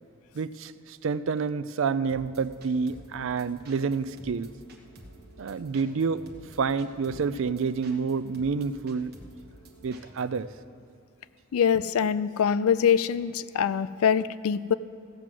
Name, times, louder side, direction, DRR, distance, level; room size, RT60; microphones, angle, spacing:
voice 1, 0.3-4.5 5.4-6.2 6.6-9.2 9.8-10.5, right 5 dB, 60° right, 14 dB, 0.4 m, -28 dB
sound 1, 2.1-10.4, right 1 dB, 45° right, 1.2 m, -50 dB
voice 2, 11.5-14.7, left 7 dB, 75° left, 16 dB, 0.4 m, -24 dB
15.5 x 6.1 x 7.6 m, 2.4 s
head